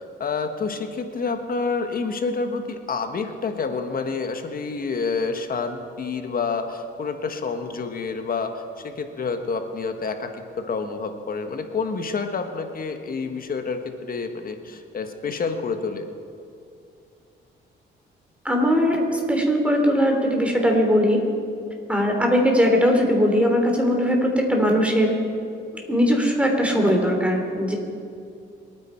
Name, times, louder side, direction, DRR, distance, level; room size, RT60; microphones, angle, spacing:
voice 1, 0.0-16.0, left 4 dB, 45° left, 6 dB, 1.5 m, -28 dB
voice 2, 18.4-21.2 21.9-25.2 25.9-27.7, equal, 5° right, 1 dB, 3.1 m, -20 dB
24.5 x 9.5 x 4.6 m, 2.4 s
cardioid pair, 90°, 20 cm